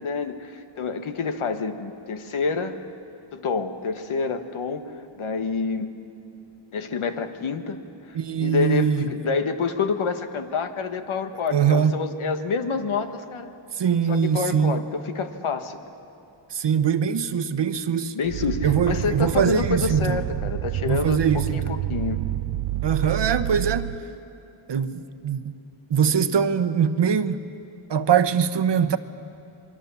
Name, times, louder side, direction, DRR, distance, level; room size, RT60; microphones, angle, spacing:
voice 1, 0.0-2.8 3.3-4.8 5.2-5.9 6.7-7.8 8.1-13.5 14.1-15.8 18.1-22.2 23.0-23.1, left 4 dB, 75° left, 1.5 m, -28 dB
voice 2, 8.1-9.1 11.5-12.0 13.7-14.8 16.5-18.1 18.6-20.2 20.8-21.6 22.8-23.9 24.7-25.6 25.9-27.4 27.9-29.0, right 7 dB, 55° right, 1.0 m, -22 dB
sound 1, 18.2-24.0, right 15 dB, 85° right, 0.7 m, -29 dB
27.5 x 22.0 x 7.1 m
wide cardioid pair, 90°, 50 cm